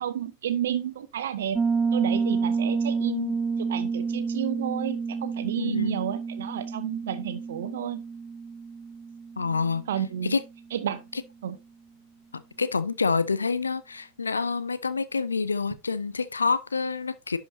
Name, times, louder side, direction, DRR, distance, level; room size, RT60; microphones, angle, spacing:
voice 1, 0.0-1.6 1.9-8.0 9.9-10.3 10.7-11.0 11.4-11.6, right 10 dB, 60° right, 1.1 m, -31 dB
Piano, 1.6-10.1, right 5 dB, 15° right, 0.4 m, -29 dB
voice 2, 5.6-6.0 9.4-9.8 10.2-10.4 12.6-17.4, left 4 dB, 75° left, 0.6 m, -27 dB
11.0 x 5.3 x 2.7 m
figure-of-eight pair, 90°, 0 cm